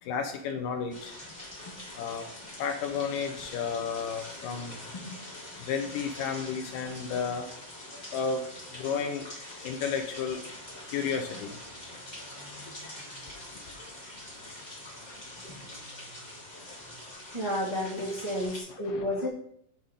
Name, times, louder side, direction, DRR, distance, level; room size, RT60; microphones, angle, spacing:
voice 1, 0.0-1.1 2.0-2.3 2.6-4.9 5.6-7.5 8.1-8.4 8.7-9.3 9.6-10.4 10.9-11.6 18.9-19.0, left 6 dB, 80° left, 5 dB, 2.2 m, -32 dB
sound 1, 0.9-18.6, left 1 dB, 30° left, 0.8 m, -44 dB
voice 2, 17.3-19.3, left 1 dB, 15° right, -7 dB, 1.1 m, -31 dB
10.5 x 3.8 x 3.7 m, 0.69 s
omnidirectional pair, 4.0 m